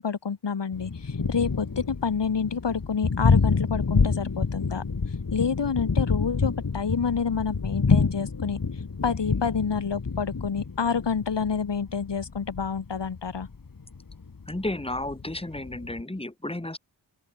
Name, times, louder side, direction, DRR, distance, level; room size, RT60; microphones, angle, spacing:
voice 1, 0.0-4.8 5.3-8.6 9.0-13.5, left 6 dB, 70° left, 5.8 m, -28 dB
Thunder, 0.7-16.0, left 4 dB, 50° left, 7.2 m, -28 dB
voice 2, 14.5-16.8, left 1 dB, 15° left, 6.7 m, -32 dB
open air
wide cardioid pair, 140°, 44 cm